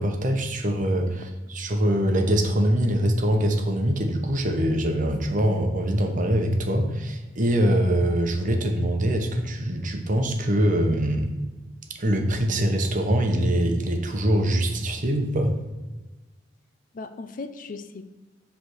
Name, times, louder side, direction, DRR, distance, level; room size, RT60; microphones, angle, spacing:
voice 1, 0.0-11.3 12.0-15.5, right 1 dB, 45° right, 4 dB, 0.9 m, -23 dB
voice 2, 1.1-1.5 16.9-18.1, left 3 dB, 45° left, 10 dB, 0.4 m, -38 dB
7.8 x 3.5 x 6.3 m, 1.1 s
head